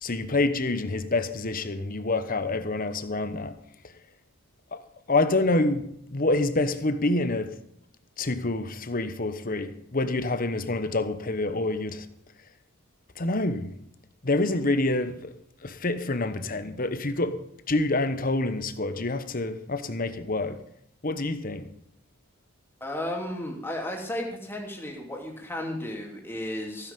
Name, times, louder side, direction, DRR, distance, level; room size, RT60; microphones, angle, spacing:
voice 1, 0.0-3.6 4.7-7.6 8.2-12.1 13.2-13.8 14.2-15.3 15.6-20.6 21.0-21.7, left 2 dB, 40° left, 1.0 m, -27 dB
voice 2, 22.8-26.9, left 1 dB, 10° left, 2.7 m, -34 dB
16.0 x 9.8 x 5.3 m
head